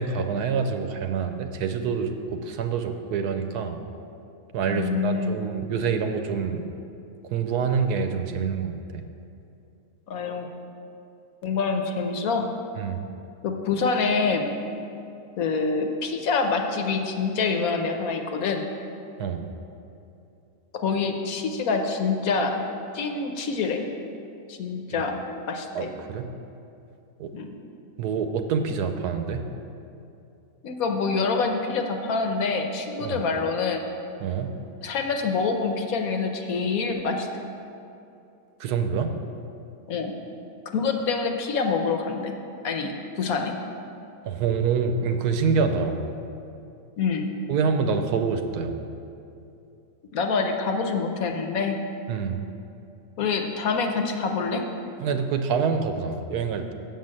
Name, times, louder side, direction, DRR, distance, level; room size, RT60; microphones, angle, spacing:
voice 1, 0.0-3.8 4.5-6.6 7.3-9.0 12.8-13.0 19.2-19.4 24.9-25.0 25.7-26.3 27.2-27.3 28.0-29.5 33.0-33.2 34.2-34.6 38.6-39.1 44.2-46.0 47.5-48.7 52.1-52.4 55.0-56.7, right 5 dB, 85° right, 7 dB, 1.2 m, -26 dB
voice 2, 4.7-5.4 10.1-10.5 11.4-12.5 13.4-14.5 15.4-18.7 20.7-22.6 22.9-23.9 24.5-25.2 25.5-25.9 27.3-27.5 30.6-33.8 34.8-37.3 39.9-40.1 40.7-42.4 42.6-43.6 47.0-47.4 50.1-51.8 53.2-54.6, left 4 dB, 65° left, 4 dB, 1.1 m, -26 dB
7.6 x 5.6 x 7.4 m, 2.7 s
omnidirectional pair, 1.7 m